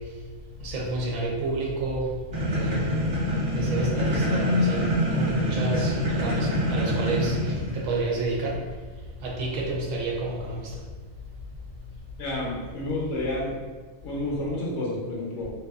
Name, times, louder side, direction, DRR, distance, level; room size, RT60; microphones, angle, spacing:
voice 1, 0.6-2.1 2.5-2.9 3.5-4.8 5.1-8.6 9.2-10.7, right 2 dB, 80° right, -2 dB, 1.0 m, -30 dB
sound 1, 2.3-8.0, equal, 40° right, 1.1 m, -25 dB
voice 2, 12.2-13.6 14.0-15.5, left 1 dB, 70° left, -4 dB, 0.9 m, -30 dB
2.6 x 2.3 x 2.3 m, 1.4 s
omnidirectional pair, 1.4 m